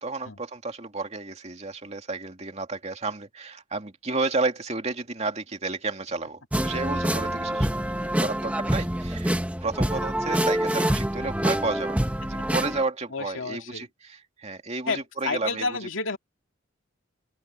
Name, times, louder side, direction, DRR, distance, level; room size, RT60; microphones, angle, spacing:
voice 1, 0.0-7.7 8.0-9.3 9.6-15.8, right 3 dB, 35° right, 2.5 m, -31 dB
sound 1, 6.5-12.8, right 1 dB, 5° right, 1.2 m, -26 dB
voice 2, 13.1-13.8 14.9-16.2, left 4 dB, 75° left, 2.4 m, -30 dB
open air
head